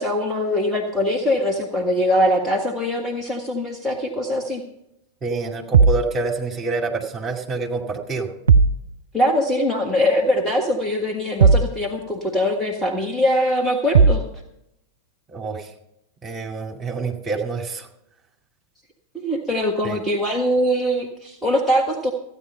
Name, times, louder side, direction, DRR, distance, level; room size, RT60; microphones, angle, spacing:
voice 1, 0.0-4.6 9.1-14.2 19.1-22.1, equal, 5° left, 1 dB, 1.4 m, -22 dB
voice 2, 5.2-8.3 15.3-15.7 16.2-17.9 19.8-20.0, right 3 dB, 15° right, 1 dB, 2.3 m, -27 dB
sound 1, 5.7-6.1 8.5-8.8 11.4-11.8 13.9-14.3, right 5 dB, 70° right, 0.4 m, -15 dB
14.5 x 9.7 x 5.5 m, 0.83 s
figure-of-eight pair, 90°, 0 cm